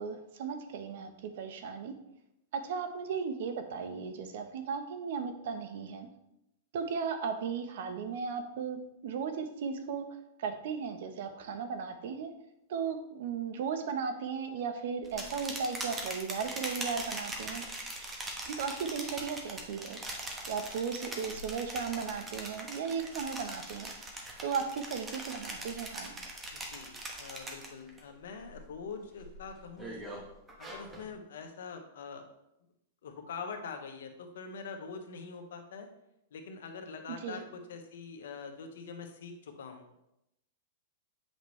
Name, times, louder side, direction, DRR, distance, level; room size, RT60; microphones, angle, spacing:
voice 1, 0.0-1.9 2.5-6.1 6.7-10.1 10.4-12.3 12.7-17.6 18.5-20.0 20.5-23.9 24.4-26.2 37.2-37.4, right 6 dB, 65° right, 7 dB, 1.0 m, -36 dB
sound 1, 15.0-28.0 28.4-28.8 29.2-31.1, right 1 dB, 15° right, 1.2 m, -41 dB
voice 2, 26.5-30.2 30.6-32.3 33.0-35.9 36.3-40.0, left 5 dB, 75° left, 5 dB, 1.2 m, -44 dB
7.9 x 5.3 x 3.2 m, 0.83 s
hypercardioid pair, 135°, 0 cm